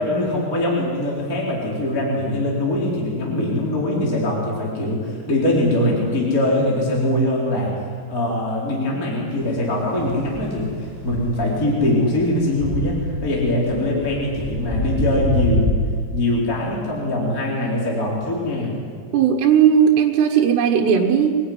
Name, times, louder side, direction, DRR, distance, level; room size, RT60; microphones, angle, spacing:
voice 1, 0.0-15.7 16.1-18.7, left 1 dB, 20° left, -4 dB, 4.3 m, -22 dB
sound 1, 9.3-15.7, left 1 dB, 5° right, 5.9 m, -27 dB
voice 2, 19.1-21.4, right 8 dB, 90° right, 1 dB, 3.6 m, -16 dB
26.0 x 19.5 x 9.5 m, 2.1 s
omnidirectional pair, 4.7 m